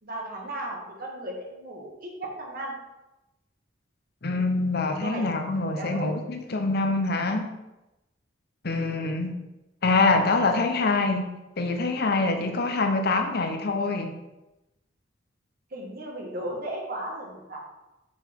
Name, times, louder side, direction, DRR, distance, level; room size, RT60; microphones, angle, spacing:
voice 1, 0.0-2.7 4.8-5.2 5.8-6.1 15.7-17.6, right 1 dB, 50° right, -1 dB, 1.7 m, -35 dB
voice 2, 4.2-7.5 8.6-9.4 9.8-11.3 11.6-14.2, left 3 dB, 55° left, 5 dB, 0.8 m, -25 dB
6.6 x 6.4 x 3.6 m, 0.98 s
head